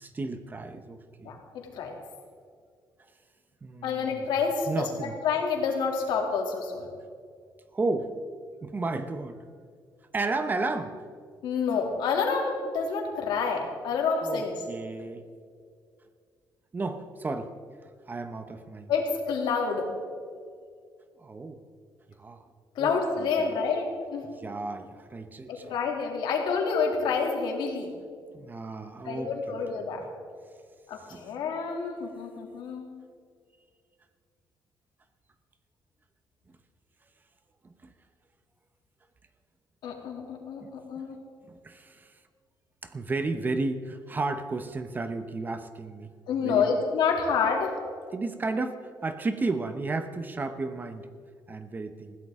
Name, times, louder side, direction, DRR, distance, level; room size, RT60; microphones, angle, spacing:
voice 1, 0.0-1.4 3.6-4.3 4.7-5.2 7.7-8.1 8.6-9.4 10.1-11.0 14.2-15.2 16.7-17.5 18.1-18.9 21.2-21.6 22.2-22.4 22.8-22.9 23.2-23.5 24.2-25.7 28.3-29.7 31.1-31.3 37.6-37.7 40.6-40.7 41.5-42.1 42.8-46.1 46.4-46.8 48.1-51.1 51.5-52.2, right 3 dB, 25° right, 9 dB, 0.9 m, -33 dB
voice 2, 3.8-4.7 5.0-6.9 11.4-14.5 18.9-19.9 22.8-24.3 25.5-27.9 29.0-30.0 30.9-32.9 39.8-41.2 46.3-47.7, left 5 dB, 85° left, 1 dB, 2.7 m, -28 dB
20.5 x 15.5 x 3.7 m, 2.1 s
cardioid pair, 135°, 8 cm